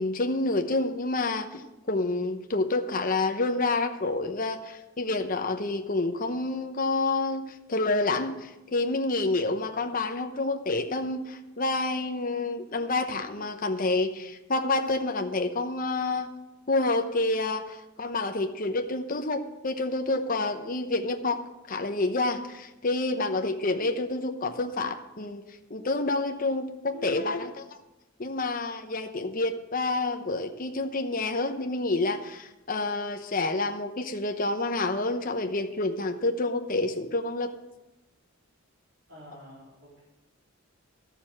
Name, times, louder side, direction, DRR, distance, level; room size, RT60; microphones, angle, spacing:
voice 1, 0.0-1.6 1.9-16.3 16.7-25.4 25.7-27.6 28.2-37.5, left 2 dB, 45° left, 6 dB, 0.9 m, -28 dB
voice 2, 39.1-40.0, left 1 dB, 80° right, -7 dB, 3.9 m, -47 dB
13.0 x 7.0 x 7.6 m, 1.0 s
head